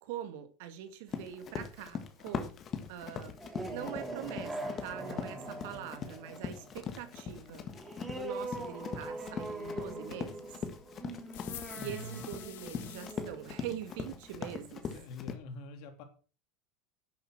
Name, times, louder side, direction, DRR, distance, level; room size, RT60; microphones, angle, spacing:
voice 1, 0.0-2.5 2.9-7.7 8.1-10.6 11.7-14.9, right 10 dB, 70° right, 2.1 m, -43 dB
Run, 1.1-15.3, left 7 dB, 25° left, 1.5 m, -41 dB
sound 1, 3.3-14.5, right 1 dB, 10° right, 2.0 m, -43 dB
sound 2, 11.3-13.2, left 15 dB, 85° left, 1.1 m, -47 dB
voice 2, 11.8-12.3 14.8-16.0, left 2 dB, 55° left, 2.9 m, -45 dB
11.5 x 7.8 x 6.1 m
supercardioid pair, 160°, 0 cm